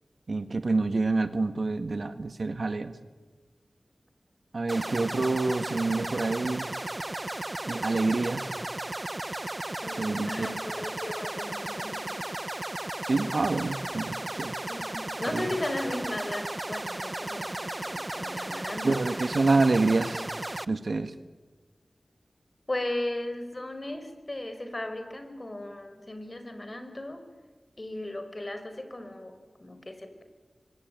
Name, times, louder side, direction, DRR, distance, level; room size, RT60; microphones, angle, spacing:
voice 1, 0.3-3.0 4.5-6.7 7.7-8.5 10.0-10.5 13.0-14.5 15.3-15.5 18.8-20.2 20.7-21.1, right 3 dB, 70° right, 11 dB, 1.5 m, -27 dB
sound 1, 4.7-20.7, right 1 dB, 30° right, 1.0 m, -35 dB
voice 2, 9.8-12.3 14.7-19.0 22.7-27.3 27.8-30.2, left 1 dB, 40° left, 8 dB, 4.9 m, -36 dB
25.5 x 24.0 x 9.2 m, 1.3 s
cardioid pair, 45°, 0 cm